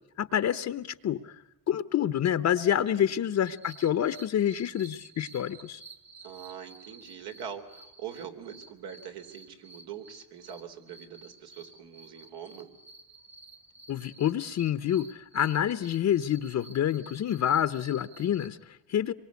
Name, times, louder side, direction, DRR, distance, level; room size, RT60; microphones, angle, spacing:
voice 1, 0.2-5.8 13.9-19.1, left 10 dB, 45° left, 13 dB, 0.9 m, -28 dB
voice 2, 2.9-3.4 6.2-12.7, right 8 dB, 75° right, 5 dB, 3.3 m, -43 dB
sound 1, 3.4-18.5, right 4 dB, 45° right, 2.6 m, -52 dB
26.0 x 23.5 x 8.3 m, 0.92 s
cardioid pair, 125°, 39 cm